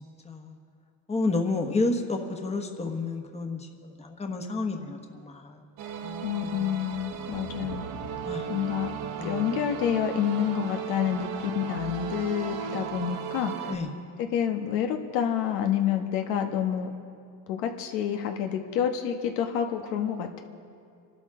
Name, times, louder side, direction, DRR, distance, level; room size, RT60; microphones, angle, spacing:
voice 1, 0.2-0.6 1.1-5.6 6.0-6.8 8.2-8.5 9.2-9.6 13.7-13.9, left 3 dB, 15° left, 3 dB, 1.2 m, -31 dB
sound 1, 5.8-13.8, right 7 dB, 60° right, 1.3 m, -36 dB
voice 2, 6.2-7.8 8.5-8.9 9.2-13.7 14.2-16.9 17.5-20.4, left 9 dB, 85° left, 4 dB, 1.3 m, -28 dB
24.5 x 12.5 x 3.7 m, 2.4 s
cardioid pair, 120°, 42 cm